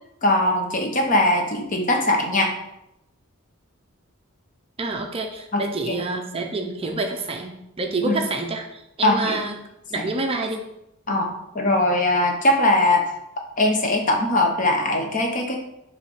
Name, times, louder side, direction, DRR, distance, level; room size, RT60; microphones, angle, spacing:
voice 1, 0.2-2.5 5.5-6.0 8.0-8.2 9.0-9.4 11.1-11.3 11.5-13.1 13.6-15.6, left 1 dB, 35° left, 2 dB, 0.9 m, -21 dB
voice 2, 4.8-9.5 9.9-10.6 11.1-11.2, right 3 dB, 25° right, 3 dB, 0.5 m, -28 dB
5.5 x 3.3 x 5.6 m, 0.85 s
head